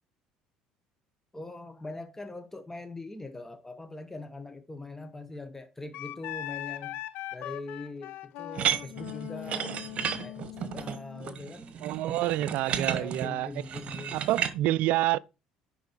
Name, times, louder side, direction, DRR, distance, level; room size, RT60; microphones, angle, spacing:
voice 1, 1.3-7.0 7.3-9.8 10.2-11.8 12.6-14.2, left 2 dB, 10° left, 1.0 m, -42 dB
Wind instrument woodwind instrument, 5.9-11.3, left 15 dB, 65° left, 0.5 m, -40 dB
sound 1, 8.5-14.5, right 8 dB, 50° right, 1.1 m, -33 dB
voice 2, 11.8-13.5 14.1-15.2, right 15 dB, 65° right, 0.4 m, -28 dB
10.0 x 4.2 x 4.5 m
hypercardioid pair, 65°, 3 cm